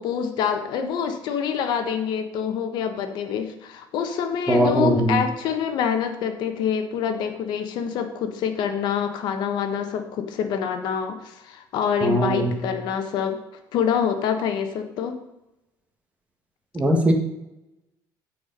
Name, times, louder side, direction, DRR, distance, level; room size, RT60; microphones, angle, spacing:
voice 1, 0.0-13.4 13.7-15.2, left 7 dB, 70° left, 7 dB, 1.2 m, -26 dB
voice 2, 4.5-5.2 12.0-12.6 16.7-17.1, right 1 dB, 15° right, 3 dB, 1.5 m, -20 dB
14.5 x 4.8 x 5.3 m, 0.92 s
cardioid pair, 145°, 8 cm